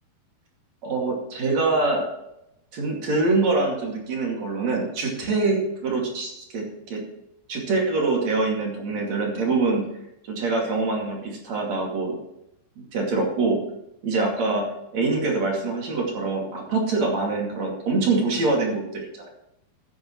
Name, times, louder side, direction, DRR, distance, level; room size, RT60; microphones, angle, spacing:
voice 1, 0.8-2.1 2.7-7.0 7.5-9.9 10.3-12.2 12.9-13.6 14.0-14.7 14.9-19.3, right 3 dB, 45° right, 0 dB, 3.4 m, -24 dB
14.0 x 9.5 x 3.2 m, 0.83 s
omnidirectional pair, 5.0 m